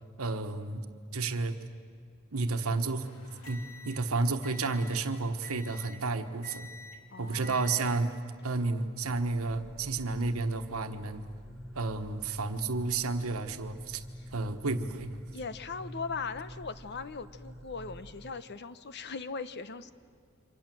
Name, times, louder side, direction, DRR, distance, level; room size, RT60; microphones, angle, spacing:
voice 1, 0.2-0.9 1.1-1.6 2.3-3.1 3.5-6.7 7.2-8.1 8.4-11.2 11.7-14.0 14.3-15.1, right 3 dB, 80° right, 7 dB, 1.3 m, -31 dB
sound 1, 3.0-5.1 5.4-6.1 6.4-7.1 7.4-8.1 8.8-9.1, left 2 dB, 75° left, 2.9 m, -49 dB
voice 2, 7.1-7.7 15.3-19.9, left 4 dB, 55° left, 13 dB, 0.9 m, -39 dB
sound 2, 9.0-18.3, equal, ahead, 1.5 m, -47 dB
28.5 x 25.0 x 7.7 m, 2.2 s
head